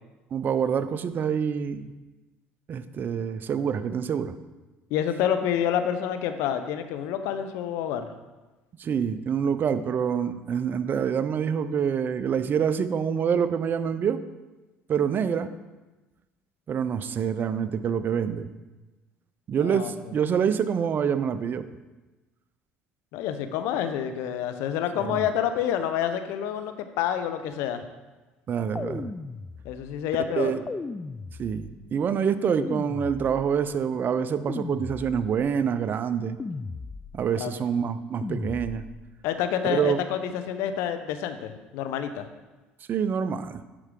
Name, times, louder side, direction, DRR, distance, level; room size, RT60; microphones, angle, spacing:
voice 1, 0.3-1.9 2.7-4.3 8.8-14.2 14.9-15.5 16.7-18.5 19.5-21.6 25.0-25.2 28.5-29.1 30.4-30.6 31.4-36.4 37.1-38.9 39.6-40.0 42.9-43.6, right 7 dB, 45° right, 12 dB, 0.5 m, -26 dB
voice 2, 4.9-8.1 19.6-20.1 23.1-27.9 29.6-30.6 37.3-37.6 39.2-42.3, left 9 dB, 75° left, 9 dB, 0.6 m, -28 dB
sound 1, 28.7-30.0 30.7-31.8 32.6-33.7 34.5-35.5 36.4-37.3 38.2-39.1, left 3 dB, 20° left, 0.3 m, -36 dB
9.8 x 4.6 x 3.7 m, 1.1 s
supercardioid pair, 75°, 5 cm